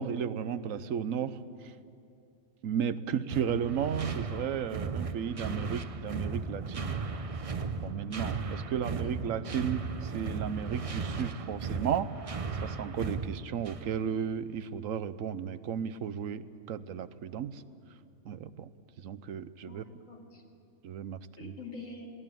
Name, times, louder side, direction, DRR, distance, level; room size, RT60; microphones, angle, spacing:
voice 1, 0.0-1.7 2.6-7.0 7.8-12.1 12.6-17.6 18.2-18.7 19.0-19.8 20.8-21.5, right 8 dB, 90° right, 14 dB, 1.2 m, -34 dB
sound 1, 3.3-14.0, right 5 dB, 35° right, 0.6 m, -36 dB
voice 2, 8.7-9.4 19.6-20.4 21.4-22.1, left 3 dB, 85° left, 0 dB, 2.9 m, -47 dB
22.0 x 16.5 x 9.2 m, 2.5 s
omnidirectional pair, 1.3 m